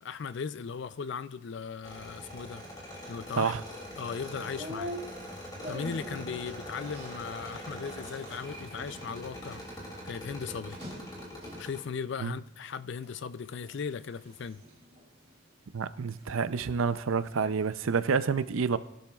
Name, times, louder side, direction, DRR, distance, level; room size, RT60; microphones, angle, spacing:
voice 1, 0.0-2.6 3.1-3.5 4.0-5.0 5.7-9.6 10.0-10.8 11.6-14.6, left 6 dB, 55° left, 0.4 m, -37 dB
sound 1, 1.8-11.8, equal, 20° left, 2.7 m, -43 dB
sound 2, 4.2-11.8 12.3-13.1 13.5-16.4 16.7-17.9, equal, 30° right, 3.3 m, -46 dB
voice 2, 15.7-18.8, right 5 dB, 75° right, 0.5 m, -28 dB
19.0 x 11.5 x 2.4 m
head